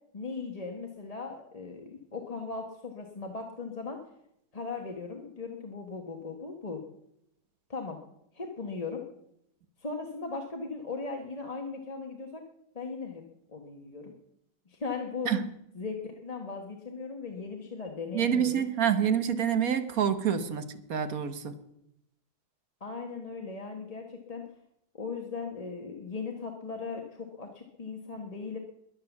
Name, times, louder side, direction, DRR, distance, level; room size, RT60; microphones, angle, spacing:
voice 1, 0.1-4.0 4.5-6.8 7.7-8.0 8.3-9.0 9.8-12.4 12.7-13.2 13.5-14.1 14.7-15.3 15.7-18.6 22.8-24.5 24.9-28.6, left 4 dB, 25° left, 1.2 m, -38 dB
voice 2, 18.1-21.6, right 8 dB, 65° right, 1.5 m, -27 dB
21.5 x 7.6 x 7.1 m
omnidirectional pair, 1.7 m